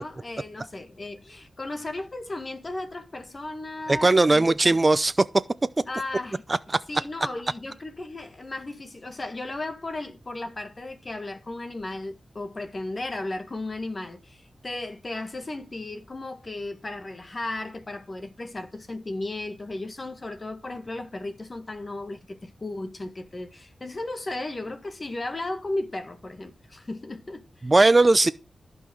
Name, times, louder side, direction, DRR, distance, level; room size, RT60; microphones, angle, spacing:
voice 1, 0.0-4.8 5.9-6.4 6.9-27.5, left 2 dB, 35° left, 1.8 m, -35 dB
voice 2, 3.9-5.3 6.7-6.8 27.6-28.3, right 2 dB, 25° right, 0.5 m, -18 dB
15.0 x 5.7 x 6.3 m
wide cardioid pair, 100°, 0 cm